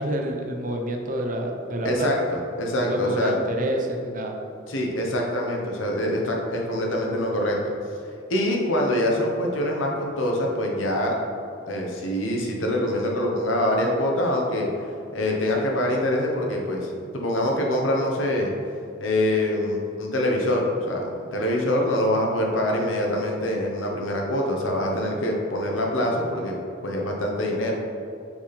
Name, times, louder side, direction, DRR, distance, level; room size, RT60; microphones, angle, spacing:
voice 1, 0.0-2.1 2.8-4.4, right 1 dB, 45° right, 2 dB, 0.6 m, -28 dB
voice 2, 1.8-3.3 4.7-7.7 8.3-11.2 11.7-14.7 15.1-18.5 19.0-26.6 26.8-27.8, left 1 dB, 85° left, 0 dB, 1.0 m, -24 dB
5.9 x 4.2 x 4.2 m, 2.5 s
head